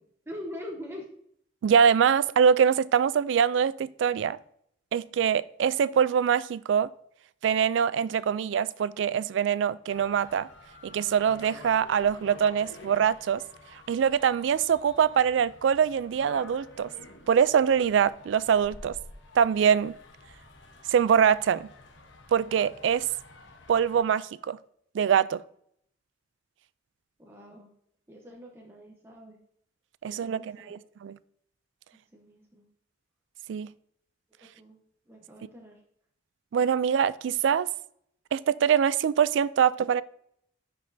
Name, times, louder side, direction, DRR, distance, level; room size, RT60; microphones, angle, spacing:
voice 1, 0.3-1.1 27.2-27.7 28.1-29.4 30.0-30.9 32.1-32.7 34.5-34.8 35.1-35.8, left 1 dB, 15° right, 0.8 m, -43 dB
voice 2, 1.6-4.4 4.9-6.9 7.4-10.5 10.8-13.4 13.9-16.9 17.3-18.9 19.4-20.0 20.9-21.7 22.3-23.1 23.7-24.6 24.9-25.4 30.0-31.2 33.5-33.7 36.5-37.7 38.3-40.0, right 7 dB, 70° right, 0.3 m, -24 dB
sound 1, 9.9-24.0, left 2 dB, 75° left, 1.0 m, -50 dB
10.0 x 5.2 x 2.7 m
head